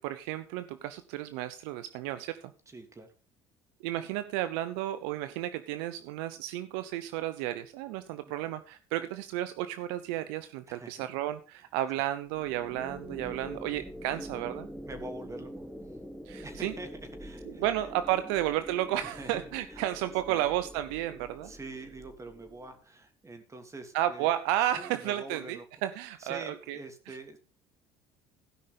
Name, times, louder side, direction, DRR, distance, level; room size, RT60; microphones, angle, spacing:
voice 1, 0.0-2.5 3.8-14.7 16.3-16.7 17.6-21.5 23.9-26.8, right 13 dB, 85° right, 12 dB, 0.7 m, -32 dB
voice 2, 2.7-3.1 10.7-11.1 14.1-14.4 14.8-15.7 16.4-16.9 17.2-17.7 19.0-19.9 20.3-20.4 21.4-24.3 24.7-25.6 26.2-27.4, right 2 dB, 25° right, 6 dB, 3.0 m, -45 dB
sound 1, 12.3-22.8, equal, ahead, 2.1 m, -45 dB
16.5 x 5.7 x 5.1 m, 0.34 s
supercardioid pair, 85°, 13 cm